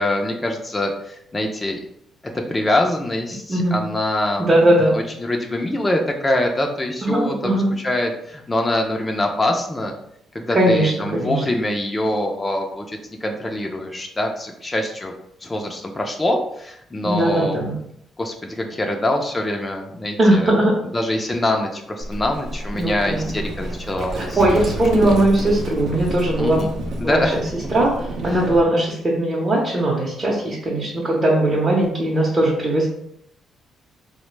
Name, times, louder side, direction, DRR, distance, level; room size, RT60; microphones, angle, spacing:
voice 1, 0.0-1.8 2.3-4.5 4.9-9.9 10.3-15.1 15.4-17.8 18.2-20.5 20.9-24.6 25.0-25.1 26.4-26.7 27.0-27.4 28.3-28.4, left 1 dB, 20° left, 2 dB, 0.4 m, -24 dB
voice 2, 4.4-5.0 7.0-7.7 10.5-11.4 17.0-17.7 20.2-20.7 22.8-23.4 24.2-26.6 27.0-27.2 27.7-27.9 28.2-32.9, right 1 dB, 30° right, -5 dB, 0.7 m, -19 dB
Livestock farm animals working animals, 22.0-28.7, right 1 dB, 70° right, 0.5 m, -29 dB
3.2 x 2.1 x 3.1 m, 0.73 s
cardioid pair, 90°, 0 cm